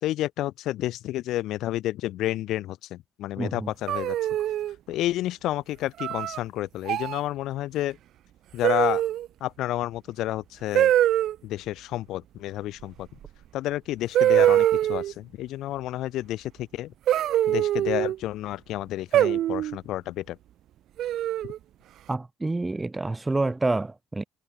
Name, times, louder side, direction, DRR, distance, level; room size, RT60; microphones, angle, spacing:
voice 1, 0.0-4.2 4.9-8.0 8.5-9.0 9.4-10.9 11.4-13.1 13.5-16.9 17.5-20.4, left 15 dB, 75° left, 3.8 m, -30 dB
voice 2, 3.4-3.7 22.1-24.2, right 2 dB, 15° right, 1.5 m, -28 dB
sound 1, 3.9-4.7 6.0-6.4 6.9-7.2 8.6-9.3 10.7-11.3 13.3-13.4 14.1-15.1 17.1-18.2 19.1-19.8 21.0-21.6, right 12 dB, 65° right, 0.6 m, -23 dB
cardioid pair, 105°, 0 cm